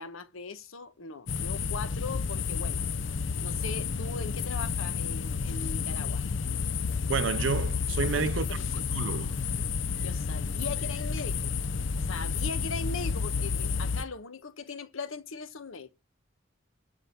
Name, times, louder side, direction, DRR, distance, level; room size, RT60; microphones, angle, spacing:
voice 1, 0.0-2.9 3.4-6.2 8.0-8.8 10.0-11.5 12.1-15.9, left 4 dB, 85° left, 1.1 m, -39 dB
sound 1, 1.3-14.0, left 5 dB, 65° left, 0.6 m, -31 dB
voice 2, 7.1-8.5 8.9-9.4, right 5 dB, 70° right, 0.6 m, -29 dB
12.5 x 4.7 x 8.3 m
head